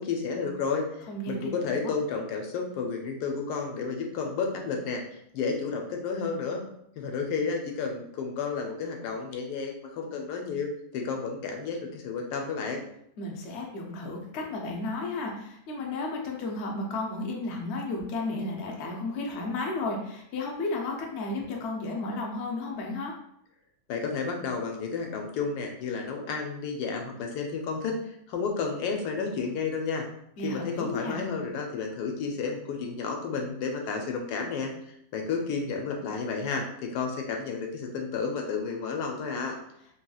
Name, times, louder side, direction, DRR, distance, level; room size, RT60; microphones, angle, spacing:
voice 1, 0.0-6.6 7.0-12.8 23.9-27.9 28.3-30.0 30.4-34.7 35.1-39.6, left 5 dB, 80° left, 2 dB, 1.1 m, -31 dB
voice 2, 1.1-1.5 13.2-23.1 30.4-31.2, left 2 dB, 60° left, 0 dB, 0.7 m, -33 dB
3.0 x 2.8 x 2.3 m, 0.72 s
omnidirectional pair, 1.7 m